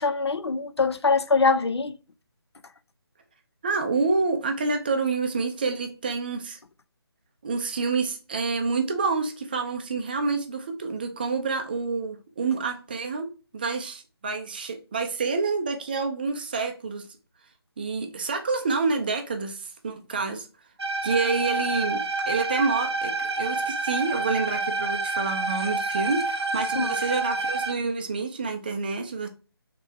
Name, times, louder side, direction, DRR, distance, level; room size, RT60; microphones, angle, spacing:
voice 1, 0.0-2.0 26.7-27.0, left 4 dB, 85° left, 0.4 m, -23 dB
voice 2, 3.6-6.6 7.4-13.3 13.5-17.1 17.8-20.5 21.0-29.3, right 4 dB, 20° right, 0.4 m, -28 dB
sound 1, 20.8-27.7, right 3 dB, 90° right, 0.6 m, -28 dB
3.3 x 3.2 x 3.3 m
figure-of-eight pair, 155°, 13 cm